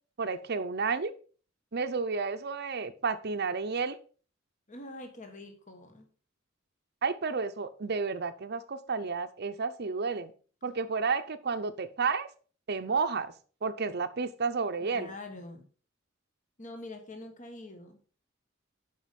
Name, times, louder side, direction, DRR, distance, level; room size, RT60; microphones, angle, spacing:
voice 1, 0.2-1.1 1.7-4.0 7.0-10.3 10.6-12.3 12.7-13.3 13.6-15.1, right 4 dB, 55° right, 11 dB, 0.7 m, -31 dB
voice 2, 4.7-6.1 14.8-15.7 16.6-18.0, left 2 dB, 40° left, 6 dB, 1.4 m, -45 dB
7.5 x 5.4 x 5.3 m, 0.41 s
head